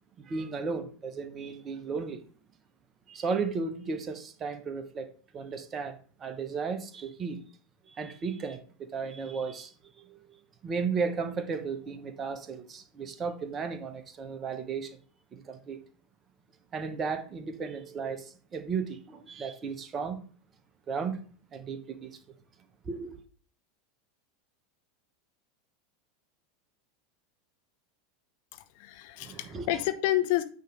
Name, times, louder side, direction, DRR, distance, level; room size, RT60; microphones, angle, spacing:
voice 1, 0.2-2.2 3.1-7.4 7.9-9.7 10.0-15.0 15.3-15.8 16.7-20.2 20.9-21.2 21.5-22.2 22.8-23.2 29.2-29.7, right 5 dB, 25° right, 0.9 m, -35 dB
voice 2, 28.5-30.4, left 15 dB, 50° left, 0.6 m, -29 dB
9.3 x 3.2 x 5.1 m
figure-of-eight pair, 80°, 0 cm